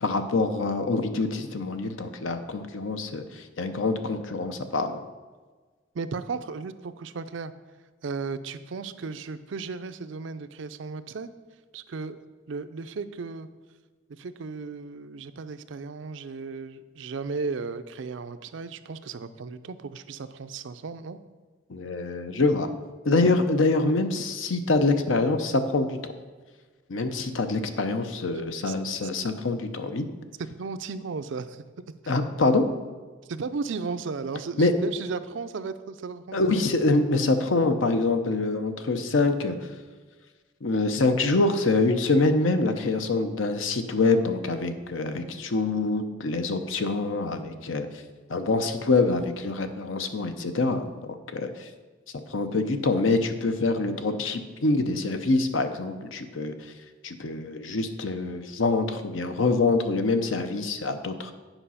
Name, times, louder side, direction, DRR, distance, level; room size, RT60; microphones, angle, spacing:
voice 1, 0.0-5.0 21.7-22.7 23.0-26.1 26.9-30.0 32.1-32.6 34.6-34.7 36.3-39.6 40.6-47.9 48.3-51.7 52.3-56.5 57.0-61.3, left 3 dB, 85° left, 8 dB, 0.7 m, -25 dB
voice 2, 5.9-7.5 8.0-11.3 11.7-13.5 14.1-21.2 28.6-28.7 30.6-31.6 33.3-36.6, right 4 dB, 75° right, 11 dB, 0.5 m, -35 dB
9.0 x 5.1 x 5.6 m, 1.4 s
head